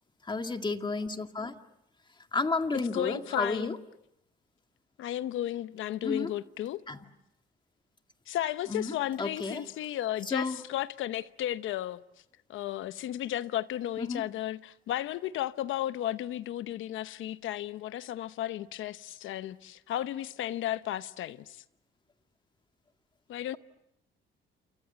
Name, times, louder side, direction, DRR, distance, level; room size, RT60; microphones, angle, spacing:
voice 1, 0.2-1.6 2.3-3.8 6.0-6.3 6.9-7.0 8.7-9.6 10.3-10.6 14.0-14.2, left 3 dB, 25° left, 2.1 m, -32 dB
voice 2, 2.9-3.8 5.0-6.8 8.3-12.0 12.5-21.6 23.3-23.6, left 12 dB, 80° left, 0.9 m, -34 dB
28.5 x 28.5 x 7.0 m
cardioid pair, 90°, 20 cm